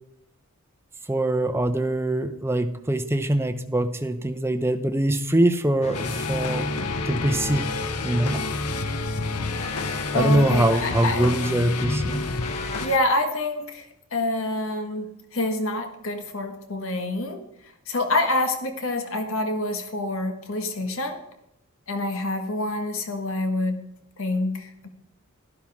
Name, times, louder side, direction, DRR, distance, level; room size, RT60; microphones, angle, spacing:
voice 1, 1.1-6.7 7.1-7.7 8.0-8.4 10.1-12.2, right 1 dB, 10° right, 9 dB, 0.7 m, -23 dB
sound 1, 5.8-13.0, left 1 dB, 30° left, 0.8 m, -32 dB
sound 2, 5.9-12.9, left 4 dB, 90° left, 0.8 m, -31 dB
voice 2, 10.1-11.4 12.8-17.4 17.9-21.2 21.9-23.8 24.2-24.9, left 2 dB, 60° left, 6 dB, 1.5 m, -27 dB
12.0 x 12.0 x 3.5 m, 0.82 s
head